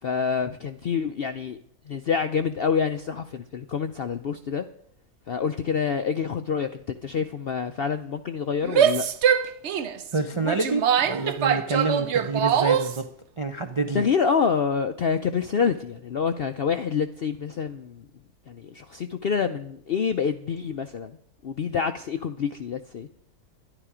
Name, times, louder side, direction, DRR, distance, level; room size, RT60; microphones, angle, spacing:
voice 1, 0.0-1.6 1.9-4.7 5.3-9.1 13.9-18.0 18.5-21.1 21.4-23.1, left 6 dB, 65° left, 9 dB, 0.6 m, -27 dB
Female speech woman speaking / Yell, 8.6-13.0, right 8 dB, 60° right, 0.8 m, -23 dB
voice 2, 10.1-13.1 13.4-14.0, right 3 dB, 40° right, 5 dB, 0.4 m, -27 dB
12.0 x 11.0 x 5.0 m, 0.67 s
omnidirectional pair, 1.6 m